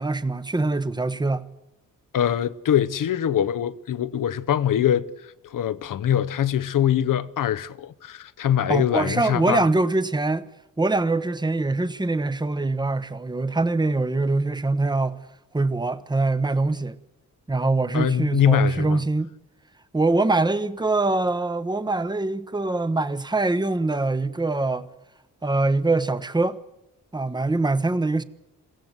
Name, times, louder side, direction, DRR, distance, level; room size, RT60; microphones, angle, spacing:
voice 1, 0.0-1.5 8.7-10.5 10.8-15.2 15.5-17.0 17.5-19.3 19.9-24.9 25.4-26.6 27.1-28.2, right 2 dB, 15° right, 0.9 m, -23 dB
voice 2, 2.1-9.7 17.9-19.0, left 10 dB, 70° left, 0.8 m, -23 dB
22.0 x 16.5 x 8.0 m
cardioid pair, 90°, 33 cm